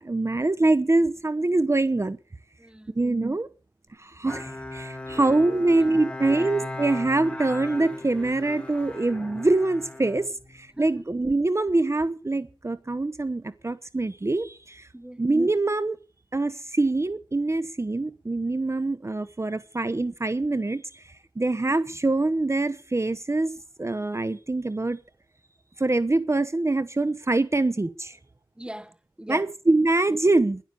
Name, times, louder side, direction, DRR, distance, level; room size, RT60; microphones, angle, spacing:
voice 1, 0.0-2.2 3.0-3.5 4.0-14.9 15.2-16.0 16.3-23.5 23.8-25.0 25.8-28.2 29.3-30.6, right 2 dB, 30° right, 0.9 m, -24 dB
voice 2, 2.6-3.0 5.1-5.3 5.7-6.5 10.7-11.0 14.9-15.2 28.6-29.5, right 1 dB, 10° right, 1.1 m, -41 dB
Bowed string instrument, 4.3-10.9, left 2 dB, 10° left, 3.0 m, -37 dB
12.5 x 11.5 x 6.9 m
cardioid pair, 50°, 9 cm